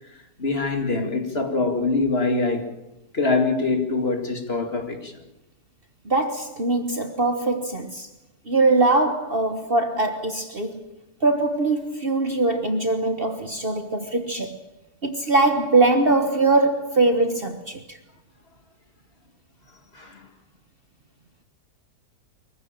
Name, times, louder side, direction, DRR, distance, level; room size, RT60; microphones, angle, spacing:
voice 1, 0.1-2.7 3.1-5.2 19.9-20.3, left 3 dB, 40° left, 2.4 m, -24 dB
voice 2, 6.0-8.1 8.5-10.8 11.2-14.6 15.0-18.0, right 2 dB, 35° right, 1.5 m, -22 dB
23.5 x 15.5 x 9.0 m
omnidirectional pair, 1.7 m